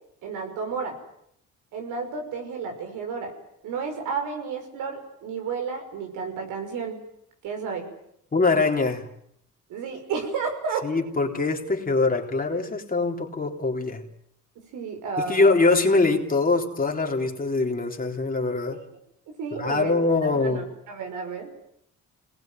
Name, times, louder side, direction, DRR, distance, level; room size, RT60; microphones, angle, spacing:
voice 1, 0.2-1.0 1.7-3.3 3.6-7.0 7.4-7.9 9.7-10.9 14.7-15.6 18.7-18.9 19.3-20.0 20.3-21.5, right 5 dB, 90° right, 4 dB, 5.9 m, -32 dB
voice 2, 8.3-9.1 10.8-14.0 15.3-18.8 19.5-20.7, left 3 dB, 30° left, 2 dB, 3.8 m, -23 dB
27.0 x 20.0 x 9.3 m, 0.73 s
cardioid pair, 90°, 30 cm